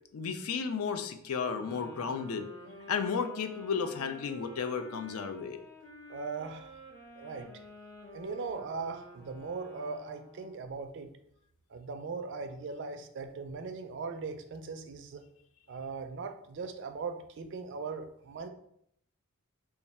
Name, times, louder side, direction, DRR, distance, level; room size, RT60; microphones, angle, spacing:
voice 1, 0.1-2.5 2.9-5.6, left 6 dB, 80° left, 8 dB, 0.4 m, -33 dB
sound 1, 1.5-10.7, equal, 55° left, 1.2 m, -51 dB
voice 2, 6.1-6.7 7.1-7.5 8.1-11.1 11.7-15.2 15.7-18.5, right 4 dB, 55° right, 7 dB, 0.4 m, -39 dB
3.3 x 2.3 x 4.1 m, 0.70 s
head